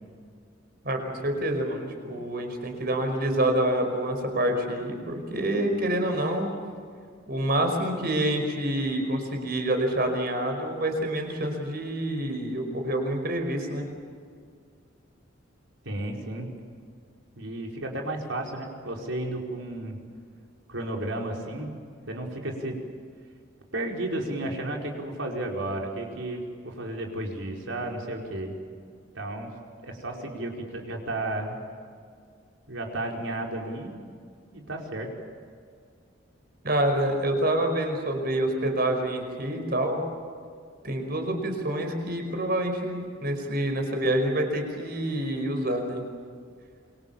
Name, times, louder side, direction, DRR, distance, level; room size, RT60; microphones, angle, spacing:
voice 1, 0.8-6.5 7.3-13.9 36.6-40.0 40.8-46.0, right 1 dB, 50° right, 5 dB, 5.2 m, -27 dB
voice 2, 15.8-16.5 17.4-20.0 20.7-21.7 22.1-22.8 23.7-28.5 29.1-29.5 29.8-31.6 32.7-33.9 34.5-35.1, right 1 dB, 80° right, 0 dB, 5.0 m, -33 dB
27.5 x 24.0 x 7.3 m, 2.2 s
head